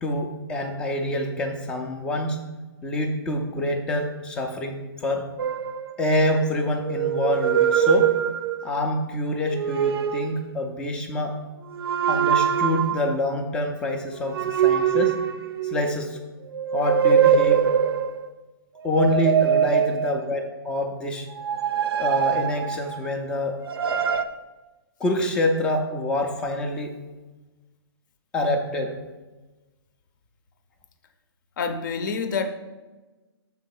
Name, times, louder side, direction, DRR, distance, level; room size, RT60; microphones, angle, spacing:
voice 1, 0.0-2.4 2.8-5.3 6.0-8.1 8.6-11.4 12.0-15.2 15.6-16.2 16.7-17.6 18.8-21.3 22.0-23.6 25.0-27.0 28.3-29.0, left 1 dB, 5° left, 3 dB, 0.4 m, -26 dB
sound 1, 5.4-6.3 6.8-8.8 9.4-10.4 11.7-13.1 14.3-16.0 16.5-18.2 18.8-20.4 21.3-23.1 23.7-24.2, right 8 dB, 70° right, 0.5 m, -23 dB
voice 2, 31.6-32.5, left 5 dB, 50° left, 9 dB, 0.7 m, -27 dB
6.7 x 4.0 x 5.4 m, 1.2 s
hypercardioid pair, 165°, 13 cm